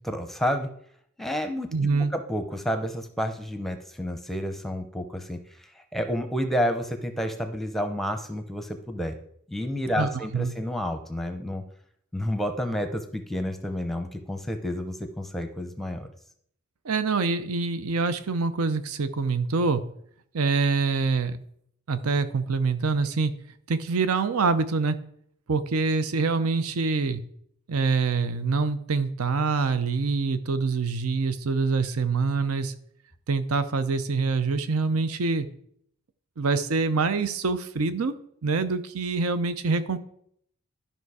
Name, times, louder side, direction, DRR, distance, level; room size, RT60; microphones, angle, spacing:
voice 1, 0.0-0.7 1.2-9.2 9.5-11.7 12.1-16.1, equal, ahead, 7 dB, 0.6 m, -30 dB
voice 2, 1.7-2.1 9.9-10.5 16.8-19.8 20.3-21.4 21.9-23.3 23.7-25.0 25.5-27.2 27.7-32.7 33.3-35.5 36.4-38.1 38.4-40.0, right 4 dB, 85° right, 12 dB, 0.6 m, -25 dB
12.0 x 5.5 x 4.8 m, 0.68 s
head